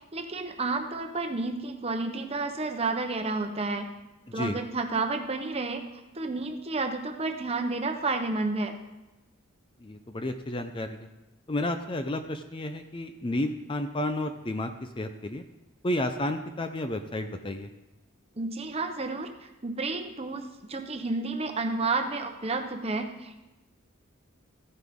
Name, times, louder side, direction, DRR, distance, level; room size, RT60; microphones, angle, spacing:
voice 1, 0.1-3.9 4.3-5.8 6.1-8.7 18.4-20.4 20.7-23.4, right 3 dB, 30° right, 5 dB, 0.9 m, -31 dB
voice 2, 9.8-11.1 11.5-15.4 15.8-17.7, left 1 dB, 25° left, 8 dB, 0.5 m, -31 dB
14.5 x 9.6 x 3.6 m, 1.0 s
head